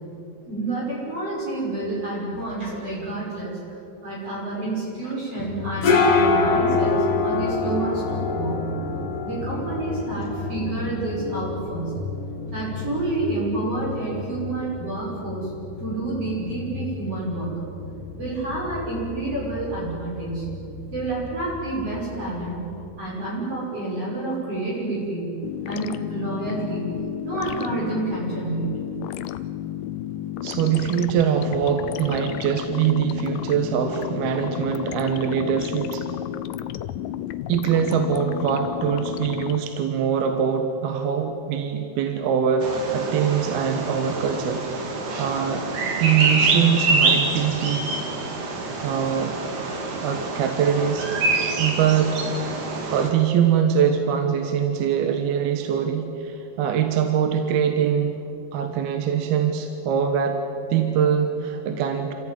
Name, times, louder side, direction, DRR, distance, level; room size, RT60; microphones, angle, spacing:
voice 1, 0.4-8.7 9.2-12.0 12.5-15.5 15.8-17.6 18.2-20.5 20.9-22.6 23.0-26.9 27.2-28.8, right 2 dB, 35° right, -6 dB, 6.9 m, -29 dB
sound 1, 5.4-22.9, left 3 dB, 55° left, 3.6 m, -27 dB
sound 2, 25.4-39.6, left 12 dB, 75° left, 2.0 m, -32 dB
voice 2, 30.4-36.1 37.5-45.6 46.0-47.9 48.8-49.4 50.0-51.1 51.6-52.3 52.9-58.1 58.5-60.4 60.7-62.1, right 8 dB, 75° right, 5 dB, 3.2 m, -23 dB
Bird vocalization bird call bird song, 42.6-53.1, right 3 dB, 55° right, 3.9 m, -26 dB
28.5 x 16.0 x 9.5 m, 2.7 s
omnidirectional pair, 4.5 m